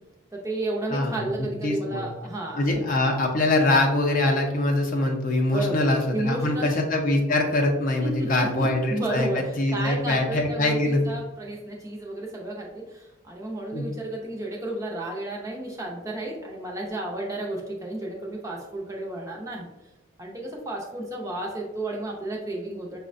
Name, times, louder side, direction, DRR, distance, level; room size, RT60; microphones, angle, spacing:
voice 1, 0.3-2.7 5.5-6.8 8.0-19.7 20.2-23.0, right 1 dB, 15° right, -2 dB, 0.5 m, -32 dB
voice 2, 0.9-2.0 2.5-11.0 13.7-13.9, left 2 dB, 40° left, 2 dB, 0.5 m, -23 dB
5.6 x 2.1 x 2.5 m, 1.0 s
head